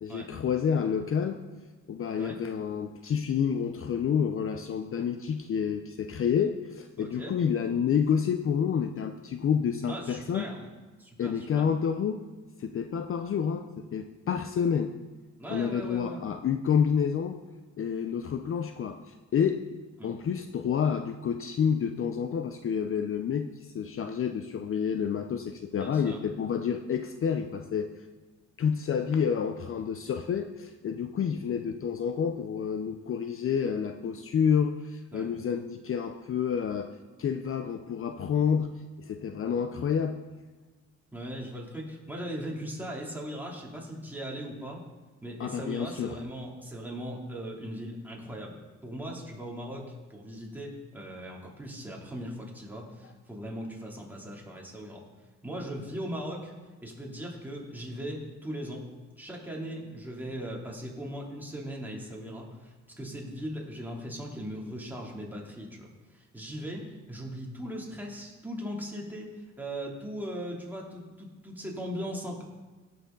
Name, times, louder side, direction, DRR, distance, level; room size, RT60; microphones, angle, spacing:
voice 1, 0.0-1.4 1.9-10.5 11.2-12.2 12.6-14.9 15.5-17.4 17.8-19.6 20.0-27.9 28.6-38.7 39.0-40.2 45.4-46.2, left 7 dB, 45° left, 7 dB, 0.6 m, -29 dB
voice 2, 7.0-7.3 9.9-10.7 11.0-11.7 15.4-16.2 20.0-20.1 25.8-26.2 35.1-35.3 41.1-44.8 45.2-48.6 48.8-55.0 55.4-56.5 56.8-58.8 59.2-65.9 66.1-72.4, equal, 5° right, -3 dB, 2.9 m, -39 dB
16.5 x 6.9 x 3.9 m, 1.3 s
cardioid pair, 90°, 30 cm